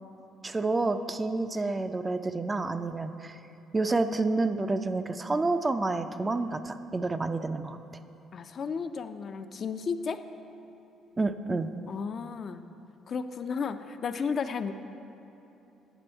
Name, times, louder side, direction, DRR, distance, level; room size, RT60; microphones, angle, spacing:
voice 1, 0.4-3.4 3.7-7.8 11.2-11.7, right 3 dB, 20° right, 9 dB, 0.3 m, -29 dB
voice 2, 8.3-10.2 11.9-12.6 13.1-14.7, left 5 dB, 50° left, 9 dB, 0.4 m, -33 dB
9.1 x 6.0 x 4.4 m, 3.0 s
cardioid pair, 95°, 0 cm